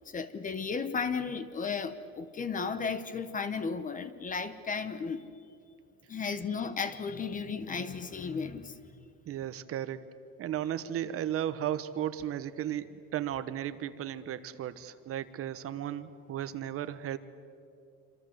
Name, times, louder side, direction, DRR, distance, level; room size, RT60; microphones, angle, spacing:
voice 1, 0.0-5.3 6.1-8.8, left 5 dB, 20° left, 12 dB, 1.1 m, -34 dB
voice 2, 9.3-10.0 10.4-17.2, right 11 dB, 40° right, 12 dB, 1.1 m, -35 dB
27.0 x 26.0 x 8.0 m, 2.4 s
cardioid pair, 150°, 35 cm